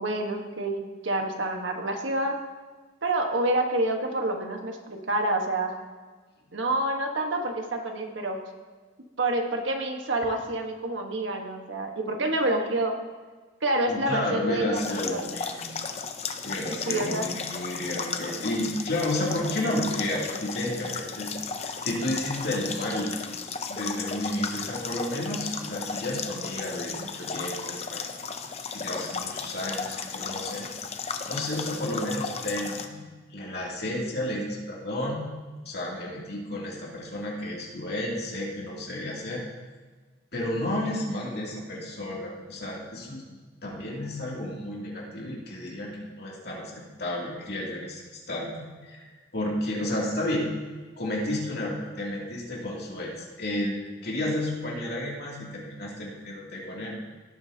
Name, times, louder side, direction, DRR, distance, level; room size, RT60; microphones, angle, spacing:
voice 1, 0.0-2.4 3.0-5.8 6.5-8.4 9.2-12.9 13.6-14.8 15.1-15.3 16.7-17.3, right 1 dB, 80° right, 3 dB, 1.4 m, -28 dB
voice 2, 13.9-15.7 16.4-21.3 21.6-23.2 23.7-28.0 28.7-30.7 31.3-33.0 33.3-35.2 35.6-39.4 40.3-43.2 43.6-46.7 47.0-48.0 48.3-48.5 48.8-49.0 49.3-50.5 51.0-57.0, left 1 dB, 55° left, -4 dB, 2.9 m, -31 dB
sound 1, 14.8-32.9, left 5 dB, 35° left, 0.6 m, -35 dB
17.5 x 8.5 x 2.9 m, 1.4 s
head